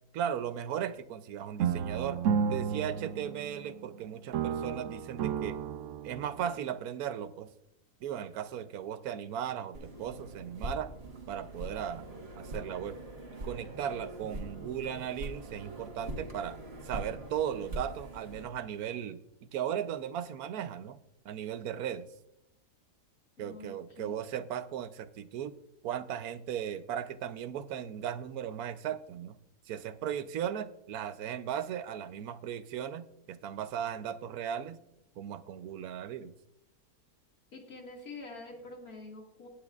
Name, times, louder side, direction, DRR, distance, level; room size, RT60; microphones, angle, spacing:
voice 1, 0.1-2.2 2.5-5.6 6.0-7.5 8.0-10.9 11.3-12.1 12.4-13.0 13.4-16.6 16.8-19.2 19.5-21.0 21.2-22.1 23.4-25.5 25.8-29.4 29.7-34.8 35.2-36.3, right 9 dB, 85° right, 13 dB, 1.2 m, -37 dB
sound 1, 1.6-4.0 4.3-6.6, right 7 dB, 65° right, 0.9 m, -32 dB
sound 2, 9.7-18.5, right 1 dB, 45° right, 1.6 m, -43 dB
voice 2, 23.4-24.2 37.5-39.5, left 3 dB, 80° left, 0 dB, 2.6 m, -46 dB
17.5 x 8.6 x 2.4 m, 0.80 s
omnidirectional pair, 1.5 m